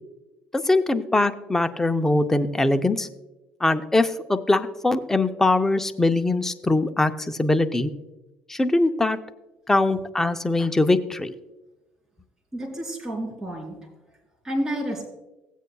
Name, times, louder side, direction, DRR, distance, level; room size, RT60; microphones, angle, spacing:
voice 1, 0.5-3.1 3.6-7.9 8.5-9.2 9.7-11.3, left 2 dB, 10° left, 8 dB, 0.6 m, -22 dB
voice 2, 12.5-13.7 14.4-15.1, equal, 15° right, -1 dB, 3.5 m, -30 dB
16.0 x 8.1 x 2.3 m, 1.0 s
cardioid pair, 100°, 4 cm